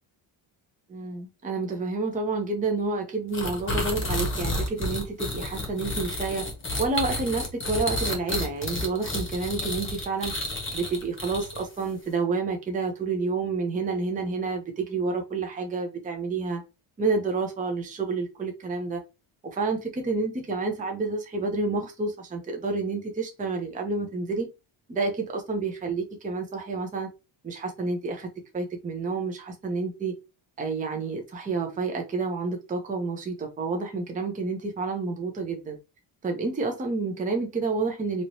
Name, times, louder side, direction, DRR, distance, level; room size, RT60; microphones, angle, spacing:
voice 1, 0.9-6.5 6.8-10.3 10.7-16.6 17.0-19.0 19.5-24.5 24.9-27.1 27.4-28.3 28.5-30.1 30.6-35.8 36.2-38.2, right 3 dB, 15° right, 0.6 m, -29 dB
sound 1, 3.3-11.8, left 1 dB, 25° left, 0.9 m, -31 dB
3.1 x 2.9 x 2.6 m
cardioid pair, 130°, 48 cm